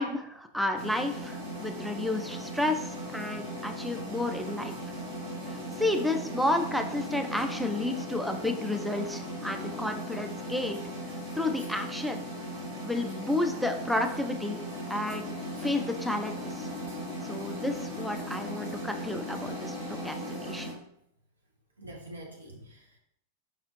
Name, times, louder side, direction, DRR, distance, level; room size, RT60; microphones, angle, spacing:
voice 1, 0.0-4.7 5.5-10.8 11.3-12.3 12.8-14.6 14.9-15.3 15.6-16.7 17.2-20.7, left 2 dB, ahead, 5 dB, 0.4 m, -31 dB
sound 1, 0.8-20.7, equal, 60° right, 1.5 m, -38 dB
voice 2, 20.2-20.6 21.8-22.9, right 1 dB, 75° right, 0 dB, 0.9 m, -48 dB
5.1 x 2.4 x 3.0 m, 0.74 s
figure-of-eight pair, 90°, 0 cm